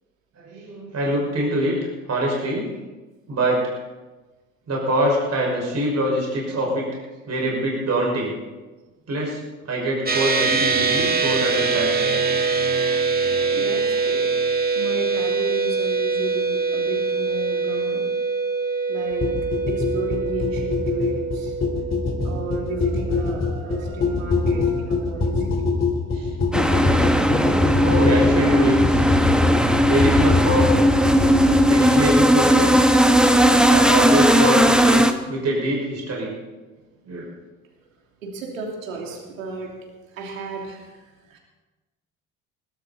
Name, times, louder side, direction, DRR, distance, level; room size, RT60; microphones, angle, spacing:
voice 1, 0.4-2.8 3.3-3.8 4.7-6.9 7.2-8.4 9.1-12.1 13.3-13.5 17.9-18.0 26.1-26.3 27.8-29.1 29.9-30.7 31.7-32.7 33.7-36.3 37.1-37.3, right 1 dB, 40° right, -2 dB, 5.9 m, -24 dB
sound 1, 10.1-23.7, right 4 dB, 25° right, 2.1 m, -24 dB
voice 2, 13.5-14.3 14.7-18.0 18.9-19.3 19.7-21.5 22.2-25.7 38.2-39.7 40.1-41.4, right 3 dB, 85° right, 0 dB, 3.0 m, -33 dB
sound 2, 19.2-31.7, left 3 dB, 30° left, 3.6 m, -24 dB
sound 3, 26.5-35.1, equal, ahead, 1.2 m, -17 dB
21.0 x 12.5 x 4.3 m, 1.2 s
hypercardioid pair, 60°, 39 cm